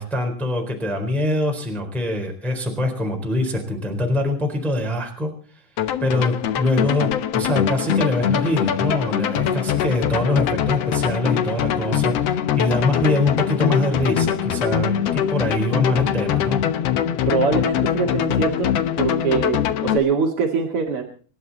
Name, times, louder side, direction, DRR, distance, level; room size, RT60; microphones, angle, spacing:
voice 1, 0.0-5.6 6.0-16.6, left 1 dB, ahead, 2 dB, 3.7 m, -23 dB
sound 1, 5.8-20.0, left 9 dB, 65° left, 1.6 m, -22 dB
voice 2, 17.3-18.7 19.0-21.0, right 5 dB, 45° right, 0 dB, 2.7 m, -23 dB
28.0 x 11.0 x 4.2 m, 0.41 s
omnidirectional pair, 4.1 m